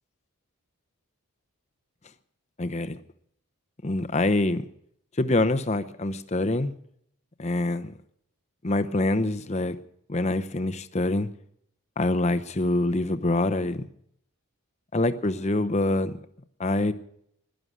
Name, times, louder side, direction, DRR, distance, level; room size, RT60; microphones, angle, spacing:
voice 1, 2.6-3.0 3.8-4.6 5.2-6.7 7.4-7.9 8.6-9.8 10.1-11.3 12.0-13.8 14.9-16.2 16.6-16.9, left 2 dB, 30° left, 10 dB, 0.7 m, -25 dB
16.5 x 11.5 x 6.3 m, 0.70 s
head